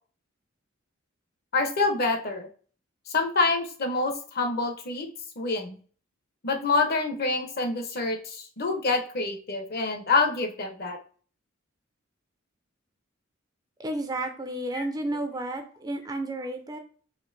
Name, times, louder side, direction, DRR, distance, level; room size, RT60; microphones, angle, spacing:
voice 1, 1.5-2.5 3.1-5.1 5.4-5.8 6.4-11.0 14.7-14.9, left 3 dB, 50° left, 4 dB, 0.7 m, -26 dB
voice 2, 13.8-16.8, right 1 dB, 20° right, 6 dB, 0.4 m, -32 dB
4.4 x 2.6 x 2.5 m, 0.42 s
head